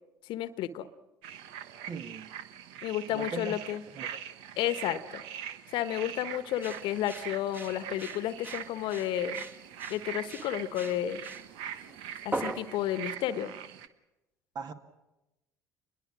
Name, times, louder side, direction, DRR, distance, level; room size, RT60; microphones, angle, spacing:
voice 1, 0.2-0.9 2.8-3.8 4.6-5.2 5.7-9.4 9.9-11.2 12.2-13.5, left 11 dB, 60° left, 1.3 m, -32 dB
sound 1, 1.2-13.9, right 10 dB, 65° right, 1.2 m, -43 dB
voice 2, 1.9-2.3 3.1-3.5 3.9-4.2 14.5-14.7, right 5 dB, 45° right, 2.3 m, -39 dB
sound 2, 6.5-13.0, right 2 dB, 20° right, 2.1 m, -40 dB
28.0 x 22.0 x 6.3 m
figure-of-eight pair, 60°, 9 cm